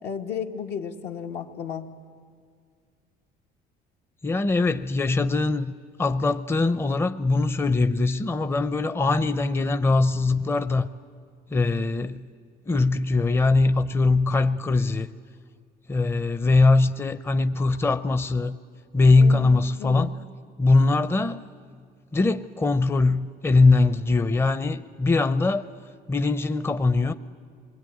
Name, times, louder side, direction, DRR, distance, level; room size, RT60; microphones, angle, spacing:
voice 1, 0.0-1.9 19.2-20.1, left 7 dB, 75° left, 3 dB, 1.8 m, -34 dB
voice 2, 4.2-5.7 6.0-10.9 11.5-12.2 12.7-15.1 15.9-18.6 18.9-20.1 20.6-21.4 22.1-25.7 26.1-27.1, left 3 dB, 15° left, 11 dB, 0.6 m, -21 dB
27.0 x 21.5 x 9.3 m, 2.1 s
cardioid pair, 110°, 17 cm